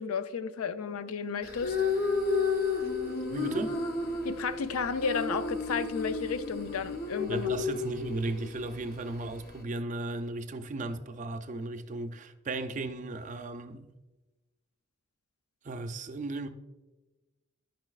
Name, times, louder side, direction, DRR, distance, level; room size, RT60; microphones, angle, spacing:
voice 1, 0.0-1.8 4.2-7.5, left 5 dB, 90° left, 0.4 m, -33 dB
sound 1, 1.4-9.6, left 4 dB, 45° left, 0.7 m, -32 dB
voice 2, 3.3-3.7 7.3-13.9 15.6-16.5, right 2 dB, 35° right, 0.4 m, -35 dB
10.5 x 6.0 x 2.4 m
head